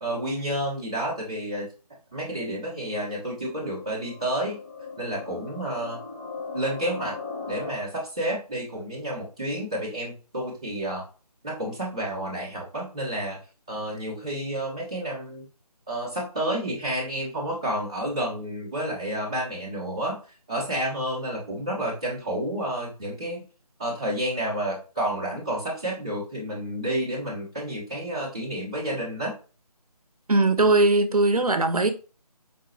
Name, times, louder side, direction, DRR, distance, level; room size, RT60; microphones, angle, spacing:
voice 1, 0.0-1.7 2.1-4.6 5.0-6.0 6.5-7.2 7.5-11.0 11.4-13.4 13.7-15.4 15.9-20.2 20.5-23.4 23.8-29.3, right 1 dB, 10° right, 0.6 m, -30 dB
sound 1, 2.7-7.7, left 4 dB, 25° left, 0.7 m, -39 dB
voice 2, 30.3-31.9, right 2 dB, 65° right, 0.6 m, -20 dB
4.6 x 2.2 x 2.9 m
figure-of-eight pair, 160°, 21 cm